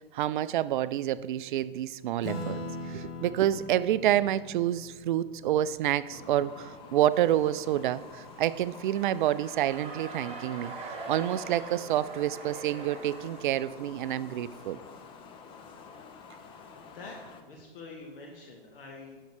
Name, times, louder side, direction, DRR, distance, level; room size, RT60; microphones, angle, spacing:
voice 1, 0.0-10.7 11.1-14.8, right 12 dB, 55° right, 16 dB, 0.4 m, -28 dB
Acoustic guitar / Strum, 2.2-7.1, left 1 dB, 35° left, 1.6 m, -41 dB
sound 1, 6.1-17.4, left 5 dB, 15° left, 0.5 m, -49 dB
sound 2, 7.1-14.7, right 3 dB, 20° right, 1.4 m, -44 dB
voice 2, 16.8-19.2, left 3 dB, 65° left, -1 dB, 1.5 m, -46 dB
9.1 x 6.4 x 3.3 m, 1.3 s
hypercardioid pair, 120°, 30 cm